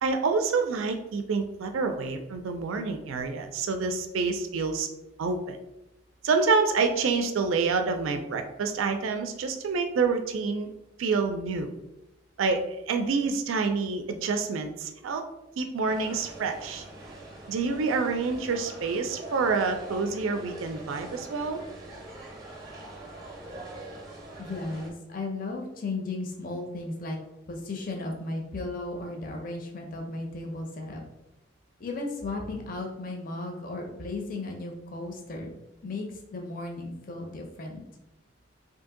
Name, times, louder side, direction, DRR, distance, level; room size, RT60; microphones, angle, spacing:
voice 1, 0.0-4.9 5.2-5.6 6.2-10.7 11.0-11.7 12.4-15.2 15.6-16.8 17.5-21.6, right 4 dB, 80° right, 6 dB, 0.4 m, -27 dB
sound 1, 15.9-24.9, right 1 dB, 15° right, 0.6 m, -43 dB
voice 2, 24.4-27.2 27.5-31.0 31.8-35.5 35.8-37.8, left 2 dB, 45° left, 1 dB, 0.5 m, -35 dB
2.7 x 2.6 x 3.6 m, 0.90 s
head